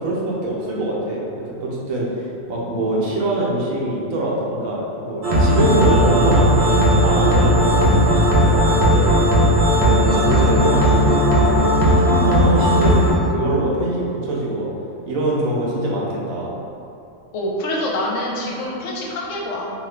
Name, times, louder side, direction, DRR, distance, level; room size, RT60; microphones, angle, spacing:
voice 1, 0.0-2.2 2.5-9.2 9.8-14.7 15.1-16.5, right 1 dB, 85° right, -4 dB, 1.1 m, -23 dB
sound 1, 5.2-13.1, equal, 60° right, 0.9 m, -16 dB
voice 2, 17.3-19.7, left 1 dB, 70° left, -3 dB, 0.9 m, -26 dB
2.8 x 2.5 x 3.1 m, 2.6 s
omnidirectional pair, 1.4 m